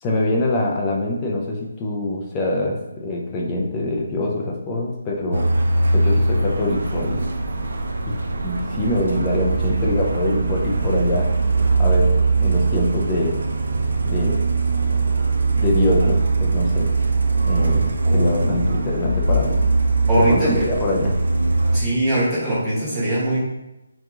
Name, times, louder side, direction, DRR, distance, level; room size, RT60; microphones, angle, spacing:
voice 1, 0.0-5.5 5.9-7.3 8.1-8.2 8.4-11.3 11.8-12.1 12.4-13.4 14.1-14.5 15.6-16.9 17.4-19.6 20.2-21.1, left 1 dB, 15° left, -2 dB, 0.5 m, -24 dB
Truck, 5.3-21.8, right 3 dB, 70° right, 0.5 m, -21 dB
voice 2, 18.0-18.5 20.1-20.7 21.7-23.4, right 1 dB, 5° right, -13 dB, 1.2 m, -21 dB
3.7 x 3.0 x 3.5 m, 0.94 s
hypercardioid pair, 175°, 0 cm